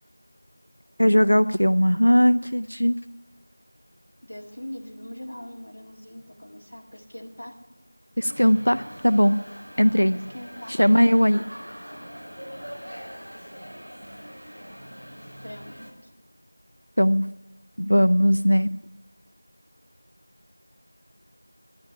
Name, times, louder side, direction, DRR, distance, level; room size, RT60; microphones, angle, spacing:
voice 1, 1.0-2.9 8.2-9.4 9.8-10.2 10.7-11.4 17.0-17.3 17.8-18.7, equal, 90° left, 11 dB, 0.6 m, -19 dB
voice 2, 4.2-7.6 10.1-10.8 15.4-15.8, equal, 35° left, -1 dB, 2.0 m, -41 dB
sound 1, 8.2-15.9, equal, 45° right, 5.5 m, -42 dB
11.5 x 11.0 x 10.0 m, 1.1 s
figure-of-eight pair, 180°, 0 cm